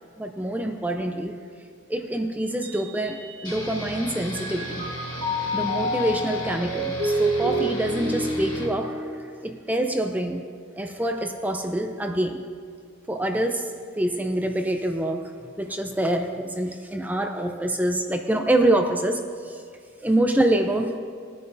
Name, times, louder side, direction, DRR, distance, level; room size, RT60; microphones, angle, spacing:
voice 1, 0.2-1.4 1.9-4.9 5.5-10.5 10.8-12.5 13.1-19.6 20.0-21.0, right 1 dB, 10° right, 5 dB, 0.5 m, -26 dB
Mallet percussion, 2.6-4.0 4.3-9.8, equal, 70° right, 1.0 m, -29 dB
sound 1, 3.4-8.7, equal, 25° left, 2.0 m, -36 dB
20.5 x 9.4 x 2.7 m, 2.2 s
head